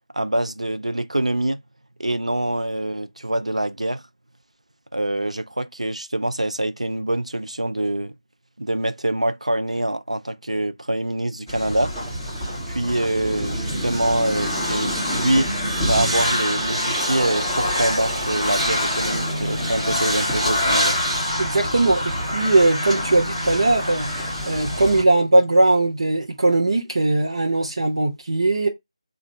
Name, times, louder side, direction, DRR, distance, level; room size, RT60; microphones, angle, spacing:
voice 1, 0.1-1.6 2.0-4.0 4.9-8.1 8.6-11.9 12.7-15.5 15.8-21.0, right 1 dB, 90° right, 0.5 m, -25 dB
sound 1, 11.5-25.0, equal, 5° right, 2.1 m, -25 dB
voice 2, 21.4-28.7, right 2 dB, 55° right, 0.8 m, -19 dB
3.7 x 2.5 x 3.1 m
figure-of-eight pair, 160°, 3 cm